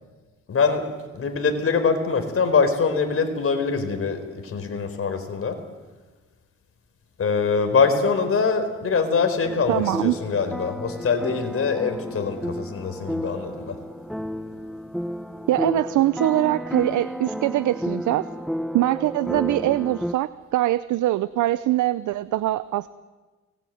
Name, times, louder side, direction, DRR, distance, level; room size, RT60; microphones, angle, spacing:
voice 1, 0.5-0.9 1.1-5.6 7.2-13.8, left 5 dB, 45° left, 7 dB, 4.5 m, -23 dB
sound 1, 9.4-20.1, equal, ahead, 0.9 m, -32 dB
voice 2, 9.7-10.1 15.5-18.3 18.7-22.9, right 15 dB, 75° right, 15 dB, 0.7 m, -23 dB
24.0 x 20.5 x 9.4 m, 1.3 s
cardioid pair, 90°, 30 cm